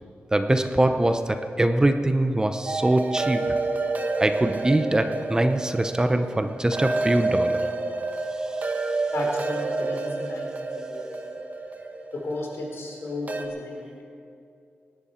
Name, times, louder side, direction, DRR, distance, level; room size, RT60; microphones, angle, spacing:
voice 1, 0.3-3.6 4.2-7.7 8.4-8.9, right 1 dB, 15° right, 8 dB, 0.7 m, -23 dB
sound 1, 2.7-13.5, right 3 dB, 40° right, 1.3 m, -29 dB
voice 2, 9.1-11.3 12.1-14.0, left 2 dB, 75° left, -1 dB, 3.6 m, -34 dB
25.5 x 11.0 x 4.4 m, 2.5 s
wide cardioid pair, 105°, 4 cm